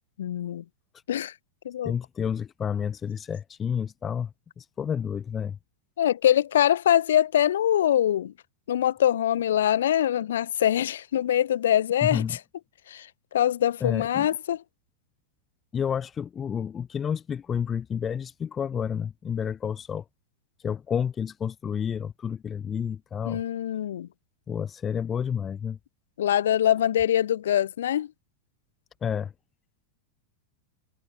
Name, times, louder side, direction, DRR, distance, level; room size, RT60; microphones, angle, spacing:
voice 1, 0.2-0.6 1.1-1.3 1.6-1.9 6.0-8.3 8.7-12.2 12.9-14.6 23.2-24.1 26.2-28.1, left 11 dB, 60° left, 4.6 m, -23 dB
voice 2, 1.8-5.6 12.0-12.4 13.8-14.3 15.7-20.0 20.6-23.4 24.5-25.8 29.0-29.3, left 7 dB, 20° left, 7.2 m, -30 dB
figure-of-eight pair, 90°, 0 cm